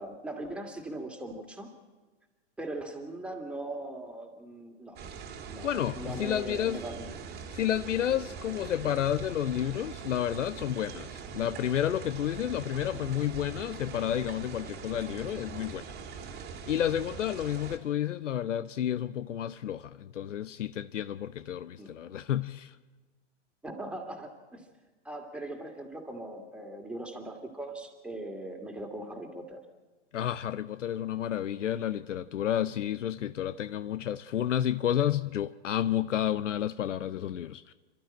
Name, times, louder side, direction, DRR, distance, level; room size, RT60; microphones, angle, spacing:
voice 1, 0.0-1.7 2.6-5.0 5.5-5.7 6.0-7.1 12.9-13.0 21.8-22.0 23.6-24.7 25.0-29.6, right 1 dB, 5° right, 2.5 m, -40 dB
sound 1, 5.0-17.8, right 6 dB, 25° right, 2.1 m, -42 dB
voice 2, 5.6-6.8 7.5-16.2 16.7-22.8 30.1-37.7, left 11 dB, 85° left, 0.7 m, -31 dB
28.0 x 12.5 x 8.8 m
hypercardioid pair, 115°, 36 cm